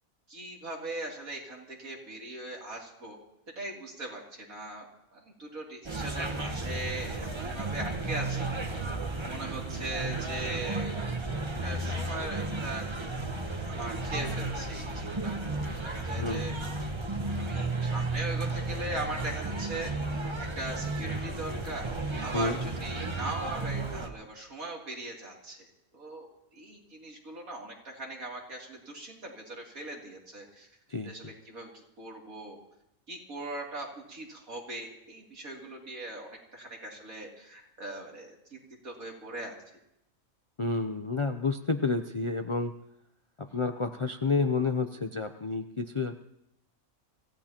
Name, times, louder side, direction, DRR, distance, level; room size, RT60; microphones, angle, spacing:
voice 1, 0.3-3.2 3.5-4.8 5.1-8.5 9.3-11.0 11.4-12.8 13.6-16.5 17.4-21.9 22.2-26.3 26.5-30.7 31.0-32.6 33.1-38.6 38.8-39.5, right 2 dB, 85° right, -1 dB, 3.4 m, -40 dB
sound 1, 5.8-24.1, right 2 dB, 25° right, 0.9 m, -33 dB
voice 2, 16.1-16.6 22.3-22.6 30.9-31.3 40.6-42.7 43.4-46.2, left 3 dB, 50° left, 7 dB, 0.3 m, -30 dB
26.0 x 16.0 x 2.9 m, 0.81 s
omnidirectional pair, 1.4 m